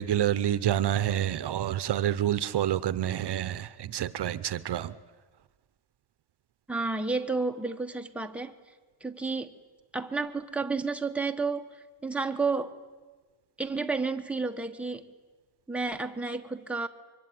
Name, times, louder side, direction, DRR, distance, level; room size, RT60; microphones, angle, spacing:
voice 1, 0.0-4.9, right 11 dB, 60° right, 15 dB, 0.8 m, -28 dB
voice 2, 6.7-8.5 9.0-9.5 9.9-11.7 12.0-12.7 13.6-15.1 15.7-16.9, right 4 dB, 5° right, 4 dB, 1.4 m, -31 dB
25.0 x 23.5 x 9.5 m, 1.4 s
wide cardioid pair, 140°, 45 cm